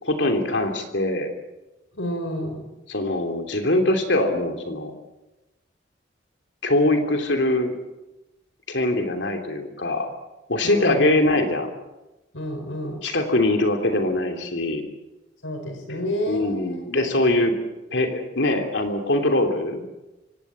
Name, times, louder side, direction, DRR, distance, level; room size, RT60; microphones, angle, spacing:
voice 1, 0.0-1.3 2.9-4.9 6.6-7.7 8.7-10.1 10.5-11.7 13.0-14.8 16.3-17.5 17.9-19.8, left 1 dB, 65° left, 5 dB, 3.1 m, -22 dB
voice 2, 1.9-2.7 10.6-11.2 12.3-13.0 15.4-16.8, equal, 85° left, 4 dB, 4.6 m, -30 dB
25.0 x 18.0 x 8.7 m, 1.0 s
head